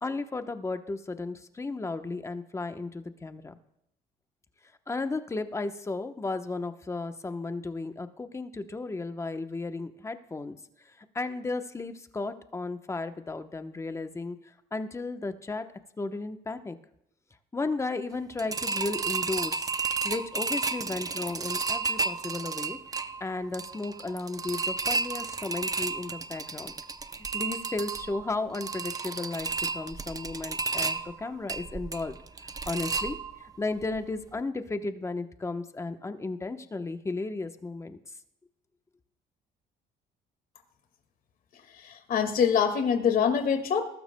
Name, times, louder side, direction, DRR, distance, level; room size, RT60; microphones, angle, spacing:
voice 1, 0.0-3.5 4.9-10.6 11.0-14.4 14.7-15.6 16.0-16.8 17.5-22.8 23.2-26.7 27.3-32.2 32.7-38.0, left 3 dB, 15° left, 8 dB, 0.9 m, -34 dB
sound 1, 18.4-33.6 33.9-34.0 34.4-34.5, right 4 dB, 20° right, 0.6 m, -32 dB
voice 2, 41.7-43.8, left 7 dB, 55° left, 8 dB, 1.9 m, -25 dB
21.0 x 12.5 x 2.2 m, 0.77 s
cardioid pair, 110°, 17 cm